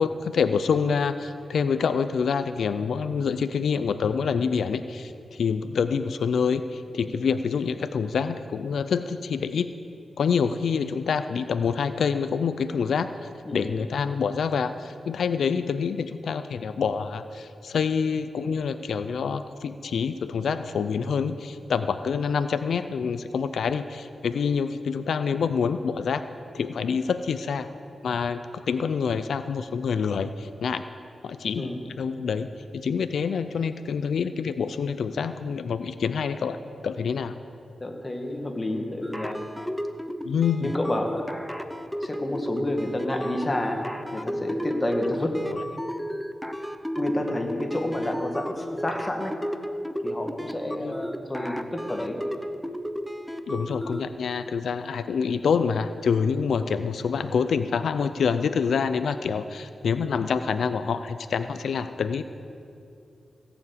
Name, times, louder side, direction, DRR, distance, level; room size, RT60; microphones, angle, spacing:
voice 1, 0.0-9.7 10.2-13.1 13.5-26.2 26.5-27.7 28.0-30.8 31.2-31.7 32.0-32.5 32.7-36.6 36.8-37.3 40.2-40.7 45.5-45.6 50.8-51.0 53.5-62.2, left 6 dB, 85° left, 11 dB, 0.5 m, -26 dB
voice 2, 37.8-39.4 40.6-41.3 42.0-43.8 44.1-45.3 47.0-49.3 50.0-52.2, left 1 dB, 25° left, 2 dB, 1.8 m, -29 dB
sound 1, 39.0-54.0, equal, ahead, 0.7 m, -33 dB
17.5 x 7.1 x 8.3 m, 2.5 s
wide cardioid pair, 90°, 0 cm